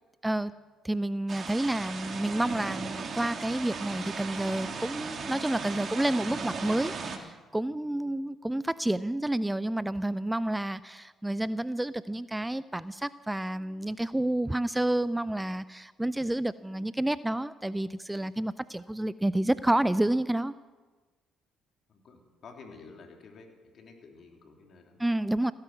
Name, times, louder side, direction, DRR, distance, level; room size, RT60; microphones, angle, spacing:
voice 1, 0.8-20.5 25.0-25.5, right 1 dB, 10° right, 17 dB, 0.5 m, -29 dB
sound 1, 1.3-7.2, right 5 dB, 50° right, 2.0 m, -37 dB
voice 2, 21.9-23.5 23.7-25.2, left 4 dB, 55° left, 2 dB, 3.2 m, -51 dB
16.5 x 10.5 x 7.8 m, 1.3 s
hypercardioid pair, 55°, 0 cm